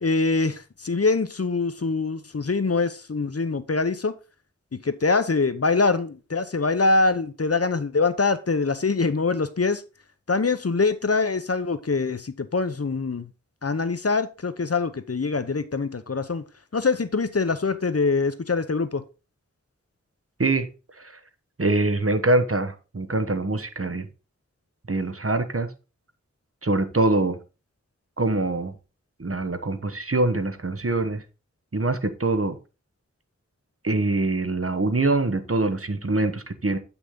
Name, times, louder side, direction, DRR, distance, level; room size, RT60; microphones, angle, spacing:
voice 1, 0.0-4.1 4.7-9.8 10.3-13.3 13.6-16.4 16.7-19.0, left 4 dB, 55° left, 0.7 m, -24 dB
voice 2, 21.6-24.1 24.9-25.7 26.6-27.4 28.2-28.7 29.2-31.2 31.7-32.6 33.8-36.8, right 2 dB, 50° right, 1.1 m, -24 dB
8.2 x 5.9 x 3.7 m
wide cardioid pair, 40°, 29 cm